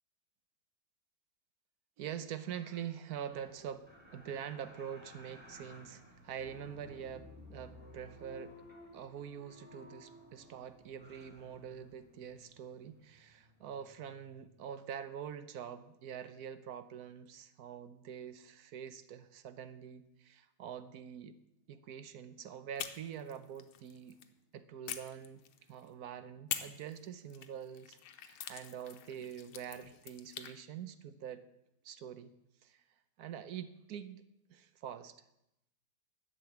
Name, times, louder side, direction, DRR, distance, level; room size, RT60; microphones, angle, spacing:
voice 1, 2.0-8.6 8.9-21.4 21.7-24.2 24.5-25.4 25.7-31.4 31.8-32.3 32.6-32.8 33.2-34.2 34.5-35.2, right 8 dB, 65° right, 12 dB, 1.0 m, -45 dB
sound 1, 3.3-14.7 15.1-15.2, left 1 dB, 5° right, 1.8 m, -56 dB
sound 2, 22.8-24.3 24.9-25.9 26.5-30.5, left 10 dB, 90° left, 1.7 m, -45 dB
11.5 x 6.9 x 8.5 m, 0.83 s
omnidirectional pair, 2.2 m